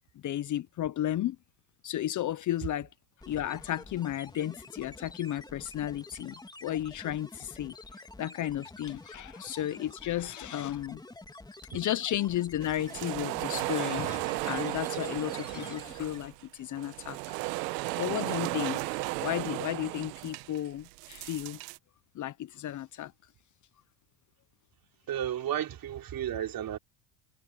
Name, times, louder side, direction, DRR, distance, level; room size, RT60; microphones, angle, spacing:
voice 1, 0.2-1.4 1.8-2.9 3.3-7.8 8.2-11.0 11.7-17.4 18.0-21.6 22.1-23.1, left 12 dB, 40° left, 0.8 m, -33 dB
sound 1, 3.2-16.4, left 2 dB, 10° left, 3.5 m, -49 dB
sound 2, 12.6-21.8, right 23 dB, 80° right, 1.3 m, -35 dB
voice 2, 25.1-26.8, right 10 dB, 45° right, 3.9 m, -33 dB
supercardioid pair, 110°, 49 cm